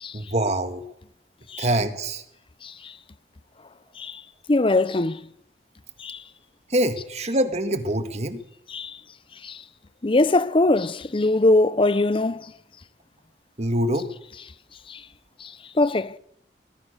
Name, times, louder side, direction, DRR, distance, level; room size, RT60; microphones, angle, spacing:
voice 1, 0.1-0.8 1.6-2.2 6.7-8.4 13.6-14.1, right 1 dB, 40° right, 1.7 m, -24 dB
voice 2, 2.6-3.0 4.0-4.2 4.5-5.2 6.0-6.2 8.7-9.0 9.4-9.6 10.0-12.5 14.9-15.0 15.4-16.2, left 2 dB, 30° left, 0.7 m, -22 dB
21.0 x 20.5 x 6.7 m
head